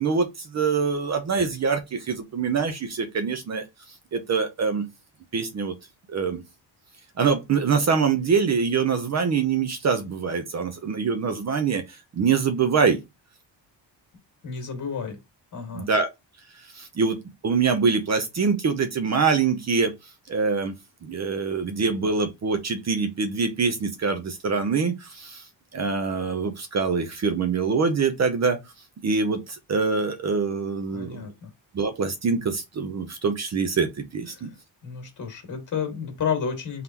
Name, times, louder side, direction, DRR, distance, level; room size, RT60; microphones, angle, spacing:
voice 1, 0.0-3.6 4.1-4.8 5.3-5.7 6.1-6.4 7.2-13.0 15.7-16.1 16.7-17.2 17.4-19.9 20.3-20.7 21.0-25.4 25.7-28.6 29.0-31.2 31.7-34.5, right 5 dB, 35° right, 0.6 m, -24 dB
voice 2, 14.4-15.2 15.5-15.9 30.9-31.5 34.3-34.5 34.8-36.8, left 6 dB, 40° left, 1.9 m, -31 dB
3.7 x 3.6 x 2.9 m
cardioid pair, 135°, 45 cm